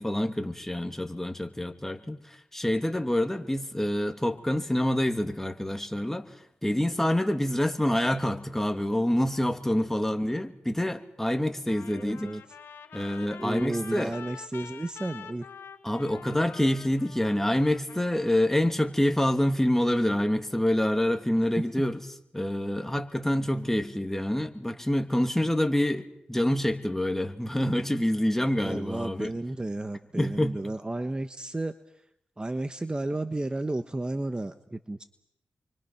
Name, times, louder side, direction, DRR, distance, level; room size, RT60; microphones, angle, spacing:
voice 1, 0.0-6.3 6.6-12.4 12.9-14.1 15.8-22.0 22.3-29.3 30.2-30.6, left 1 dB, 10° left, 6 dB, 2.8 m, -27 dB
Trumpet, 11.7-18.7, left 7 dB, 85° left, 1.8 m, -46 dB
voice 2, 11.9-12.4 13.4-15.5 23.4-23.7 28.6-31.7 32.4-35.0, right 2 dB, 25° right, 10 dB, 1.3 m, -33 dB
29.5 x 24.5 x 6.0 m, 0.74 s
cardioid pair, 50°, 4 cm